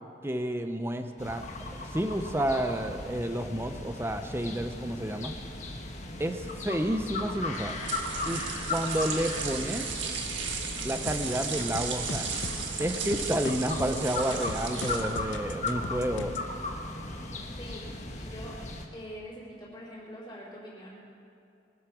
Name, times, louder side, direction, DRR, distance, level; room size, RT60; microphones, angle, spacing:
voice 1, 0.2-1.5 1.9-5.3 6.2-7.8 8.2-8.4 8.7-9.9 10.8-12.3 12.8-16.3, right 1 dB, 15° right, 7 dB, 0.7 m, -30 dB
sound 1, 1.2-18.9, left 2 dB, 40° left, 1.3 m, -37 dB
sound 2, 7.5-15.4, right 5 dB, 85° right, 1.6 m, -35 dB
sound 3, 11.1-16.5, left 3 dB, 85° left, 0.7 m, -39 dB
voice 2, 17.6-18.6 18.9-21.2, equal, 25° left, -6 dB, 4.3 m, -44 dB
22.5 x 8.2 x 6.0 m, 2.6 s
head